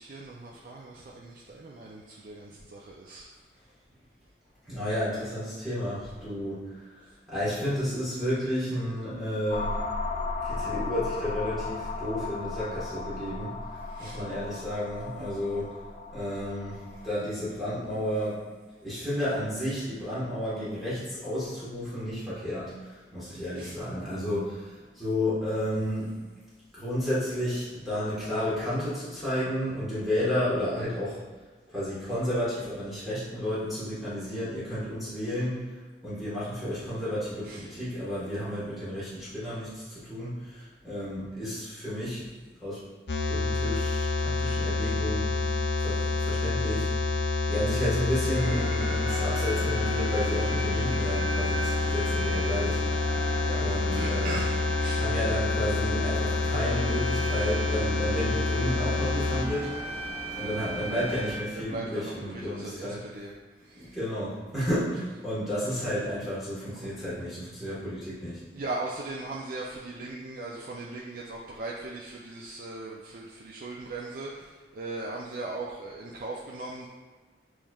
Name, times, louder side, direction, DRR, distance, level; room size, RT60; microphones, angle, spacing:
voice 1, 0.0-3.3 13.8-14.2 23.5-23.8 37.4-37.6 53.4-53.6 53.9-54.5 54.8-55.0 61.5-63.3 63.6-64.0 66.8-66.9 68.5-76.9, right 2 dB, 50° right, -3 dB, 0.4 m, -39 dB
voice 2, 4.7-7.0 7.3-9.8 10.4-13.5 14.0-15.7 16.1-18.4 18.8-26.1 26.7-31.2 31.7-35.6 36.0-42.3 42.6-42.8 43.2-45.3 45.8-46.9 47.5-52.8 53.6-54.4 55.0-60.0 60.3-63.0 63.7-68.4, equal, ahead, -12 dB, 1.4 m, -32 dB
sound 1, 9.5-17.1, left 3 dB, 40° left, 0.3 m, -35 dB
sound 2, 43.1-59.4, left 3 dB, 80° left, 0.6 m, -28 dB
sound 3, 48.3-61.4, right 1 dB, 30° right, 1.0 m, -36 dB
7.1 x 3.1 x 2.3 m, 1.4 s
head